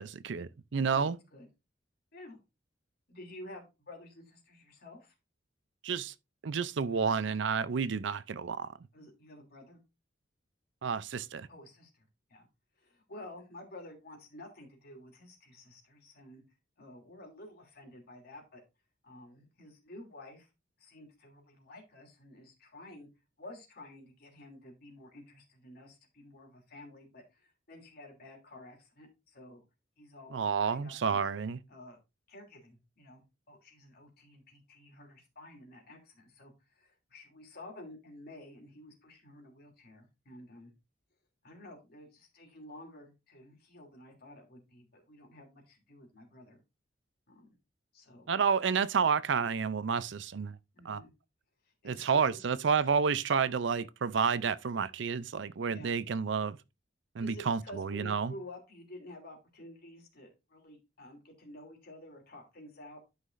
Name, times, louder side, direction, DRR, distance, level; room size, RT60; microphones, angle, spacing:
voice 1, 0.0-1.2 5.8-6.1 6.4-8.7 10.8-11.5 30.3-31.6 48.3-50.6 50.9-51.0 51.8-56.6 57.2-58.3, right 6 dB, 65° right, 0.5 m, -30 dB
voice 2, 0.9-1.5 2.1-2.4 3.1-5.1 8.9-9.8 11.5-12.5 12.8-16.4 16.8-18.6 19.0-20.5 20.8-23.1 23.4-29.6 30.0-31.2 31.7-32.0 32.3-40.7 41.4-46.6 47.3-47.6 47.9-48.3 50.7-51.1 51.6-52.4 55.6-56.0 57.2-63.0, left 1 dB, 55° left, 2.9 m, -51 dB
11.5 x 5.7 x 2.6 m
head